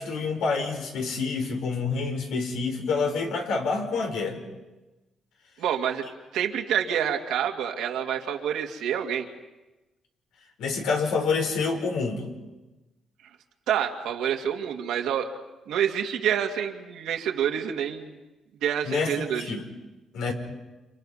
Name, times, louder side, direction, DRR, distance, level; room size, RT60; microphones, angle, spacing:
voice 1, 0.0-4.4 10.6-12.3 18.8-19.6 20.1-20.3, left 4 dB, 90° left, 2 dB, 5.0 m, -27 dB
voice 2, 5.6-6.1 6.3-9.3 13.7-15.3 15.7-18.1 18.6-19.5, right 9 dB, 85° right, 3 dB, 2.4 m, -27 dB
29.5 x 28.0 x 5.7 m, 1.1 s
cardioid pair, 90°, 0 cm